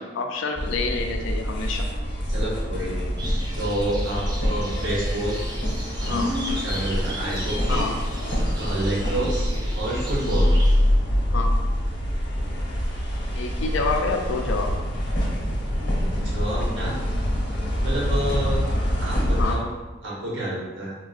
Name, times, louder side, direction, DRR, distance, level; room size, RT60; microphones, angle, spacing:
voice 1, 0.0-1.9 6.1-6.3 7.7-7.9 11.2-11.5 13.4-14.8 19.4-19.6, left 4 dB, 85° left, 3 dB, 0.4 m, -28 dB
sound 1, 0.6-19.6, equal, 60° left, 0.8 m, -25 dB
voice 2, 2.3-5.4 6.0-7.9 8.6-10.5 16.0-17.0 17.8-18.6 19.0-19.7 20.0-20.9, right 1 dB, 80° right, -5 dB, 0.9 m, -29 dB
sound 2, 3.2-10.7, right 1 dB, 20° right, 0.4 m, -38 dB
3.5 x 2.2 x 2.3 m, 1.2 s
head